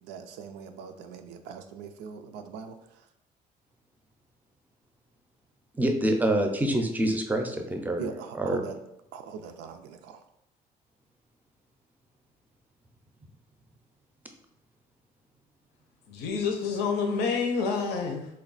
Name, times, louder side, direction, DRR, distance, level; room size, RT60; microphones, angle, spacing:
voice 1, 0.0-2.8 8.0-8.8 9.1-10.2, right 7 dB, 90° right, 8 dB, 0.4 m, -40 dB
voice 2, 5.8-8.0 8.3-8.6, right 1 dB, 10° right, 4 dB, 0.5 m, -26 dB
voice 3, 16.1-18.3, left 5 dB, 75° left, 3 dB, 0.6 m, -28 dB
3.3 x 2.3 x 3.9 m, 0.81 s
cardioid pair, 110°, 17 cm